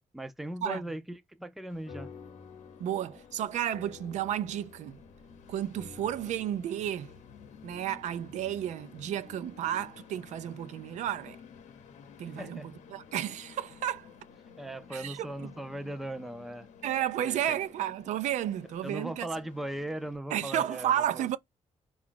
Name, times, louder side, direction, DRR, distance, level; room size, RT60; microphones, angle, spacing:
voice 1, 0.1-1.0 1.4-2.1 12.4-12.7 14.6-16.7 17.2-17.6 18.8-21.3, right 1 dB, ahead, 0.4 m, -38 dB
Train, 1.7-20.2, left 6 dB, 85° left, 0.8 m, -53 dB
sound 1, 1.9-10.6, left 5 dB, 50° left, 0.7 m, -52 dB
voice 2, 2.8-5.0 5.5-7.1 7.6-11.4 12.2-14.1 14.9-15.5 16.8-19.3 20.3-21.4, right 11 dB, 80° right, 0.4 m, -32 dB
4.7 x 2.3 x 3.7 m
wide cardioid pair, 165°, 12 cm